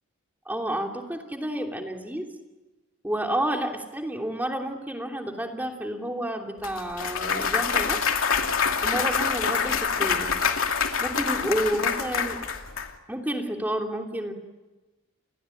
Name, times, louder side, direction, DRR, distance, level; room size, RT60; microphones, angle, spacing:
voice 1, 0.4-2.3 3.0-8.0 8.8-10.3 11.0-12.4 13.1-14.3, right 1 dB, 10° right, 2 dB, 3.0 m, -30 dB
Clapping / Cheering / Applause, 6.6-12.9, left 6 dB, 75° left, 2.6 m, -26 dB
30.0 x 21.5 x 9.2 m, 1.2 s
head